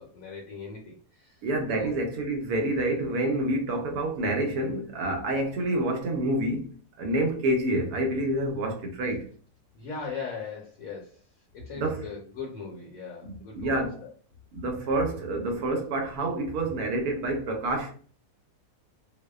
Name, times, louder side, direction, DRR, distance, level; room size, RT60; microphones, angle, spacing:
voice 1, 0.0-1.4 1.7-2.0 9.7-11.2 11.5-14.1, left 5 dB, 70° left, 1.0 m, -39 dB
voice 2, 1.4-9.3 11.7-12.1 13.2-14.0 14.5-17.9, right 1 dB, 75° right, 1.1 m, -28 dB
2.7 x 2.0 x 2.3 m
omnidirectional pair, 1.6 m